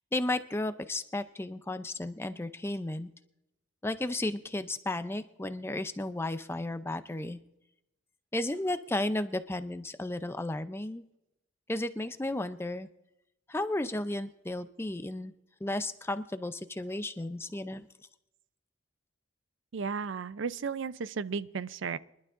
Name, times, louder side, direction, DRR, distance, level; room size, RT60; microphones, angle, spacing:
voice 1, 0.1-3.1 3.8-7.4 8.3-11.0 11.7-12.9 13.5-15.3 15.6-17.9, left 1 dB, 10° left, 11 dB, 0.5 m, -33 dB
voice 2, 19.7-22.0, right 5 dB, 70° right, 16 dB, 0.4 m, -34 dB
24.0 x 11.5 x 2.5 m, 0.85 s
head